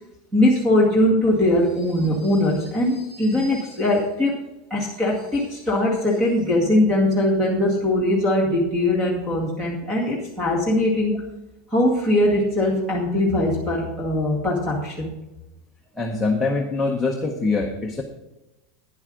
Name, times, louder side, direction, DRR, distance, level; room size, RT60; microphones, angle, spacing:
voice 1, 0.3-4.4 4.7-11.2 11.7-15.1, left 1 dB, 15° right, -2 dB, 2.0 m, -21 dB
voice 2, 16.0-18.0, left 3 dB, 5° left, 0 dB, 0.9 m, -23 dB
10.0 x 8.0 x 5.1 m, 0.97 s
supercardioid pair, 165°, 0 cm